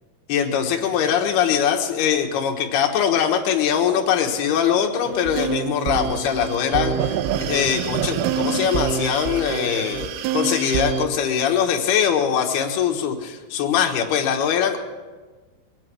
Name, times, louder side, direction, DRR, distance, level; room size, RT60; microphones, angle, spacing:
voice 1, 0.3-14.8, left 8 dB, 65° left, 2 dB, 2.6 m, -22 dB
sound 1, 5.1-11.1, right 7 dB, 80° right, 3.2 m, -26 dB
23.5 x 9.1 x 6.1 m, 1.4 s
omnidirectional pair, 6.0 m